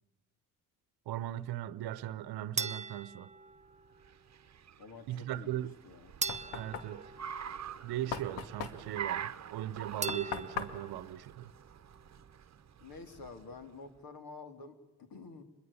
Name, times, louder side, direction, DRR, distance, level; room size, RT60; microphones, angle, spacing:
voice 1, 1.1-3.3 5.1-5.7 6.5-7.1 7.8-11.5, right 13 dB, 65° right, 1.0 m, -38 dB
sound 1, 2.6-4.1 6.2-8.0 10.0-11.1, right 4 dB, 15° right, 0.8 m, -40 dB
Car, 3.6-13.9, right 9 dB, 40° right, 1.1 m, -46 dB
voice 2, 4.8-6.1 12.8-15.4, left 4 dB, 55° left, 3.8 m, -49 dB
Knock, 5.7-12.2, left 7 dB, 75° left, 2.1 m, -43 dB
26.5 x 22.0 x 7.1 m
hypercardioid pair, 60°, 41 cm